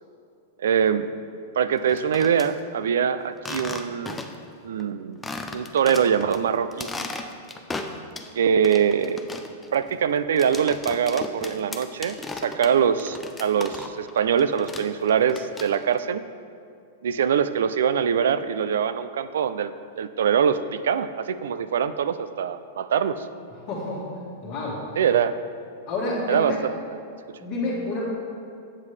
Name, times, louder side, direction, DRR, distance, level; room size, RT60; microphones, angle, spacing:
voice 1, 0.6-1.1 1.6-4.2 4.6-5.2 5.5-6.9 8.4-9.2 9.7-16.2 17.0-23.3 25.0-25.4 26.3-26.7, right 7 dB, 85° right, 13 dB, 0.3 m, -23 dB
sound 1, 1.8-2.5 3.4-4.5 4.8-4.9 5.2-6.4 6.7-8.3 8.6-14.1 14.4-16.0, left 3 dB, 10° left, 0.3 m, -36 dB
voice 2, 23.7-24.0 24.4-24.8 25.9-26.6 27.4-28.1, left 2 dB, 30° left, -9 dB, 1.4 m, -28 dB
7.4 x 7.2 x 3.2 m, 2.5 s
supercardioid pair, 160°, 0 cm